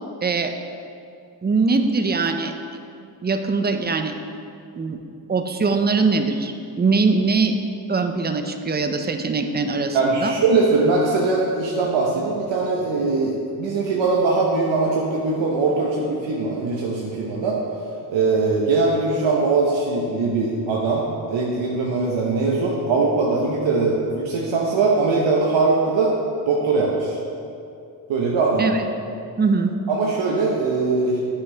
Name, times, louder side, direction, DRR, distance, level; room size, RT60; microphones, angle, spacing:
voice 1, 0.2-0.5 1.4-2.5 3.2-4.1 4.8-5.0 5.3-7.6 7.9-10.3 28.6-28.8 29.4-29.7, right 4 dB, 25° right, 7 dB, 0.4 m, -21 dB
voice 2, 9.9-17.6 18.1-26.1 26.5-27.2 28.1-28.7 29.9-31.2, right 3 dB, 75° right, -3 dB, 0.9 m, -21 dB
8.7 x 5.8 x 3.2 m, 2.5 s
cardioid pair, 95°, 45 cm